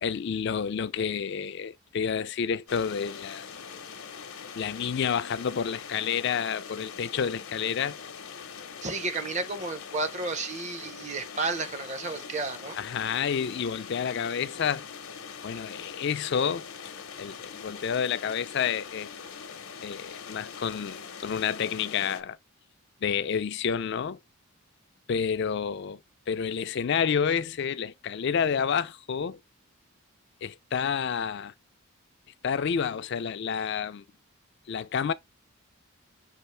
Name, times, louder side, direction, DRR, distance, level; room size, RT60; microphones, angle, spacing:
voice 1, 0.0-3.5 4.5-8.0 12.8-14.8 15.4-16.7 17.2-19.1 19.8-22.4 23.0-24.2 25.1-26.0 26.3-29.4 30.4-31.5 32.4-34.0 34.7-35.1, left 7 dB, 55° left, 0.4 m, -29 dB
sound 1, 2.7-22.2, left 6 dB, 75° left, 0.7 m, -42 dB
voice 2, 8.8-12.8, right 3 dB, 35° right, 0.7 m, -32 dB
6.4 x 2.4 x 3.2 m
head